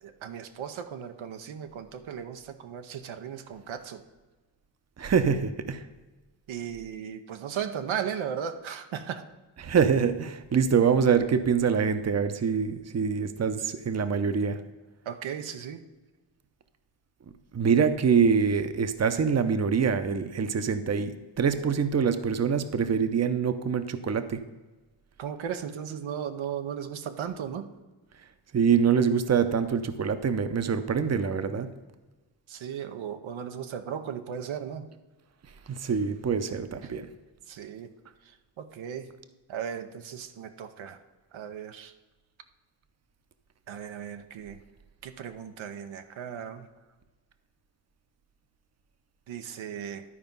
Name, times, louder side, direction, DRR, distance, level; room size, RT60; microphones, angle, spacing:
voice 1, 0.0-4.0 6.5-9.2 15.1-15.8 25.2-27.7 32.5-34.9 36.8-36.9 37.5-37.9 38.6-39.1 39.5-41.0 41.3-41.9 43.7-44.6 45.0-46.7 49.3-50.0, right 8 dB, 85° right, 7 dB, 0.8 m, -36 dB
voice 2, 5.0-5.8 9.6-14.6 17.5-24.4 28.5-31.7 35.7-37.1, right 6 dB, 35° right, 10 dB, 0.7 m, -25 dB
11.0 x 4.5 x 5.4 m, 1.2 s
cardioid pair, 65°, 46 cm